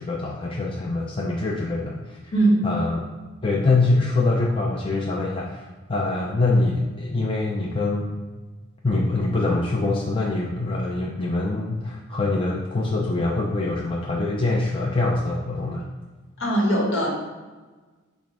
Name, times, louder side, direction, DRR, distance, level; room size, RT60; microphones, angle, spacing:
voice 1, 0.0-2.3 2.6-3.0 3.4-8.1 8.8-15.9, left 2 dB, 25° left, -2 dB, 0.5 m, -24 dB
voice 2, 2.3-2.7 16.4-17.1, right 1 dB, 65° left, -2 dB, 1.6 m, -20 dB
7.2 x 2.6 x 5.1 m, 1.3 s
head